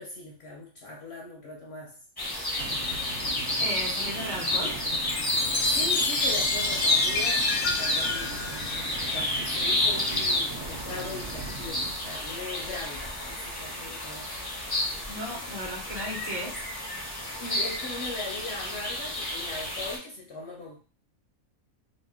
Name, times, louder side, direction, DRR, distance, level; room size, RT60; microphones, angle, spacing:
voice 1, 0.0-2.0 5.3-14.3 17.4-20.8, left 2 dB, 60° left, -2 dB, 0.7 m, -40 dB
sound 1, 2.2-20.0, left 1 dB, 30° left, 0.4 m, -30 dB
sound 2, 2.6-11.9, right 4 dB, 75° right, 0.9 m, -40 dB
voice 2, 3.6-4.8 15.1-16.6, equal, 35° right, -6 dB, 1.0 m, -35 dB
Chime, 5.0-9.6, left 4 dB, 85° left, 1.0 m, -30 dB
2.8 x 2.1 x 3.4 m, 0.38 s
omnidirectional pair, 1.4 m